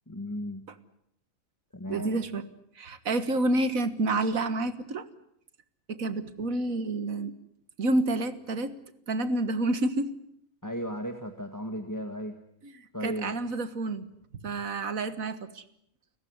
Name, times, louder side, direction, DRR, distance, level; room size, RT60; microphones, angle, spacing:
voice 1, 0.1-0.6 1.7-2.2 10.6-12.4 12.9-13.3, equal, 15° left, 5 dB, 1.6 m, -35 dB
voice 2, 1.9-2.4 2.8-5.0 5.9-7.3 7.8-8.7 9.1-10.1 13.0-14.1 14.4-15.6, right 2 dB, 75° right, 12 dB, 1.9 m, -28 dB
30.0 x 15.0 x 9.5 m, 0.75 s
omnidirectional pair, 1.4 m